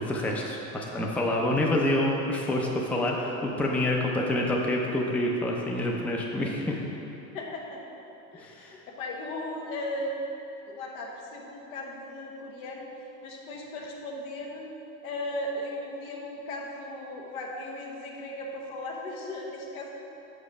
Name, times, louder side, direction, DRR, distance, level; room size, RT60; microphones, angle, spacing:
voice 1, 0.0-6.8 8.4-8.7, left 1 dB, 5° left, -1 dB, 0.5 m, -27 dB
voice 2, 7.3-7.8 8.3-10.3 10.7-12.9 13.2-14.7 15.0-19.9, left 1 dB, 80° left, -1 dB, 1.3 m, -36 dB
5.4 x 5.4 x 4.9 m, 2.9 s
supercardioid pair, 115°, 42 cm